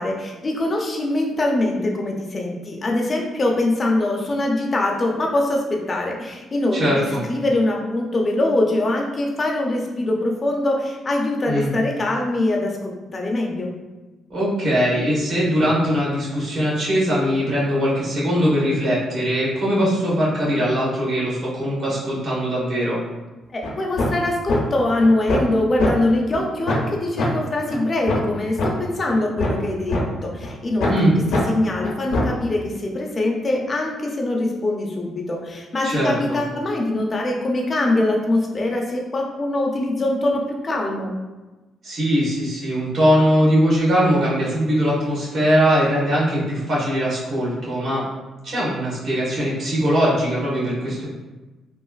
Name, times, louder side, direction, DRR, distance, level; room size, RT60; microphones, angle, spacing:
voice 1, 0.0-13.7 23.5-30.9 31.5-41.1, left 2 dB, 35° left, 0 dB, 0.5 m, -23 dB
voice 2, 6.7-7.2 11.5-11.7 14.3-23.0 30.9-31.1 35.8-36.4 41.8-48.0 48.4-51.1, equal, 55° right, -8 dB, 1.5 m, -21 dB
sound 1, 23.6-23.7 24.0-24.2 24.5-24.6 25.0-25.5 25.8-25.9 26.3-26.4 26.7-26.9 27.2-27.3 27.7-27.8 28.1-28.2 28.6-28.7 29.1-30.0 30.4-30.5 30.8-31.0 31.3-31.4 31.8-32.4, left 2 dB, 75° left, 0.6 m, -22 dB
3.2 x 2.4 x 2.3 m, 1.2 s
cardioid pair, 90°, 0 cm